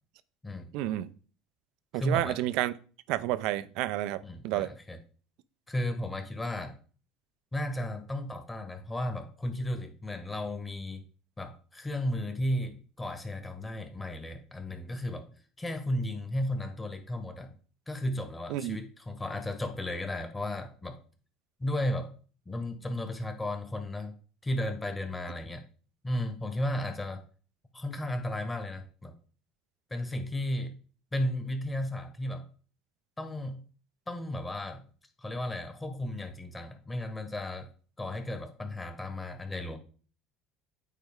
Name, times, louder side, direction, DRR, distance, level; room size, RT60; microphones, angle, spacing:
voice 1, 0.7-1.1 1.9-2.7 3.1-4.7 18.5-18.8, right 15 dB, 65° right, 0.5 m, -30 dB
voice 2, 1.9-2.4 4.2-5.0 5.7-6.8 7.5-11.0 11.4-15.3 15.6-17.5 17.9-21.0 21.6-22.1 22.4-24.1 24.4-25.6 26.0-27.2 27.7-29.1 29.9-30.8 31.1-32.5 33.2-33.6 34.1-34.8 35.2-37.7 38.0-39.8, left 1 dB, 15° left, 1.5 m, -34 dB
9.1 x 4.2 x 3.7 m
hypercardioid pair, 70°, 0 cm